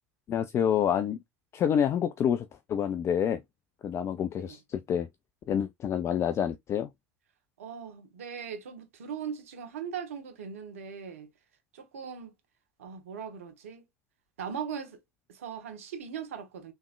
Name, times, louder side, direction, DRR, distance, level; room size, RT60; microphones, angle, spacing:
voice 1, 0.3-1.2 1.5-3.4 3.8-5.1 5.5-6.9, left 8 dB, 40° left, 0.4 m, -28 dB
voice 2, 7.6-11.3 11.7-12.3 12.8-13.8 14.4-15.0 15.3-16.7, right 7 dB, 75° right, 0.9 m, -39 dB
3.5 x 3.1 x 2.3 m
figure-of-eight pair, 70°, 7 cm